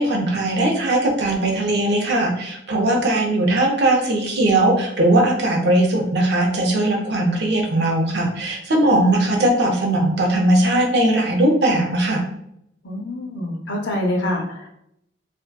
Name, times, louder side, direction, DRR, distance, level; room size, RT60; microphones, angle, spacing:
voice 1, 0.0-12.2, right 1 dB, 60° right, 1 dB, 0.5 m, -19 dB
voice 2, 12.8-14.7, left 1 dB, 75° left, 0 dB, 0.6 m, -25 dB
2.5 x 2.2 x 2.2 m, 0.75 s
head